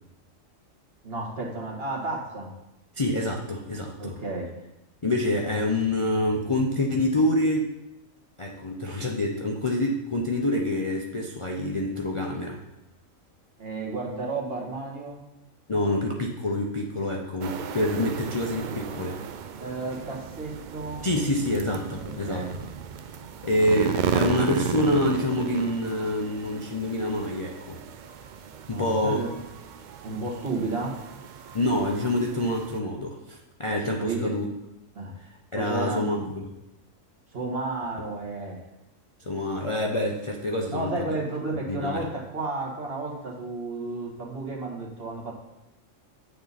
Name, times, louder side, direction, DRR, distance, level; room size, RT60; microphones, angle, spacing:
voice 1, 1.0-2.5 4.0-4.5 13.6-15.2 19.6-21.1 22.0-22.5 28.7-29.3 30.0-30.9 34.0-34.3 34.9-35.2 35.5-36.1 37.3-38.6 40.7-45.3, right 3 dB, 50° right, -2 dB, 1.9 m, -32 dB
voice 2, 3.0-4.2 5.0-7.7 8.4-12.6 15.7-19.2 21.0-22.4 23.4-27.8 28.7-29.2 31.5-34.4 35.5-36.5 39.3-41.1 41.7-42.1, left 1 dB, 35° left, -1 dB, 0.6 m, -26 dB
sound 1, 17.4-32.8, right 7 dB, 80° right, 0.4 m, -34 dB
8.7 x 6.6 x 4.1 m, 0.92 s
omnidirectional pair, 1.3 m